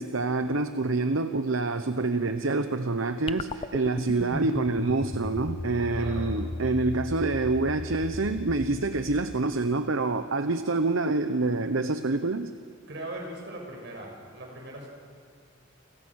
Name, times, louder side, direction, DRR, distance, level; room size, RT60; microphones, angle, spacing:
voice 1, 0.0-12.5, right 3 dB, 80° right, 9 dB, 0.9 m, -27 dB
sound 1, 3.3-9.8, left 2 dB, 25° left, 0.7 m, -36 dB
voice 2, 5.9-6.3 12.9-14.9, right 1 dB, 60° right, 1 dB, 6.8 m, -39 dB
30.0 x 24.0 x 6.4 m, 2.2 s
head